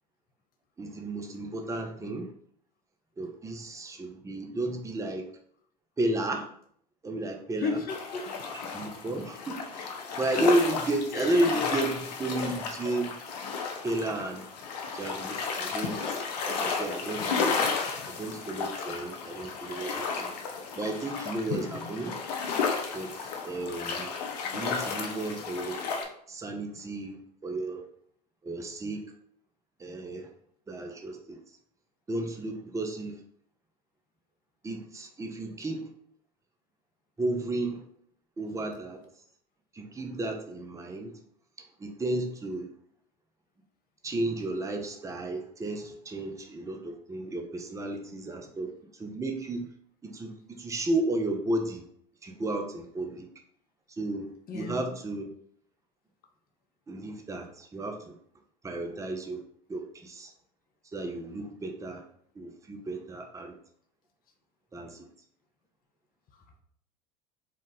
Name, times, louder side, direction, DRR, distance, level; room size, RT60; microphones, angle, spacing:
voice 1, 0.8-2.3 3.2-5.3 6.0-6.5 7.0-7.8 8.5-13.1 13.8-14.4 14.9-17.6 18.1-20.3 20.8-22.2 22.9-23.1 23.4-24.1 24.5-25.8 26.3-27.8 28.4-29.1 29.8-30.3 30.7-31.4 32.1-33.2 34.6-35.9 37.2-37.8 38.4-39.0 39.7-41.1 41.8-42.7 44.0-48.7 49.0-49.7 50.0-51.8 52.2-53.3 54.0-55.3 56.9-58.1 58.6-59.4 59.7-60.3 60.9-62.0 62.4-63.6 64.7-65.1, right 2 dB, 15° right, 3 dB, 0.7 m, -33 dB
voice 2, 7.6-8.3 11.1-11.4 21.6-21.9 48.4-48.5 54.5-54.9, left 5 dB, 45° left, 4 dB, 1.0 m, -34 dB
sound 1, 7.9-26.0, left 5 dB, 75° left, 0.8 m, -33 dB
4.4 x 2.4 x 4.0 m, 0.64 s
hypercardioid pair, 80°, 21 cm